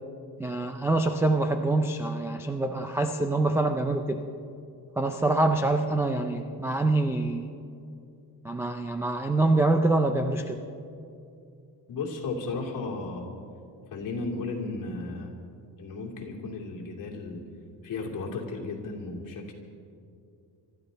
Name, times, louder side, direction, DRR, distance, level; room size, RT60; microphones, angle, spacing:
voice 1, 0.4-4.2 5.0-7.5 8.4-10.6, right 2 dB, 5° right, 3 dB, 0.3 m, -25 dB
voice 2, 11.9-13.3 13.9-15.3 15.8-17.4 17.8-19.5, left 3 dB, 45° left, -1 dB, 2.7 m, -34 dB
26.0 x 13.0 x 4.0 m, 2.5 s
cardioid pair, 170°, 44 cm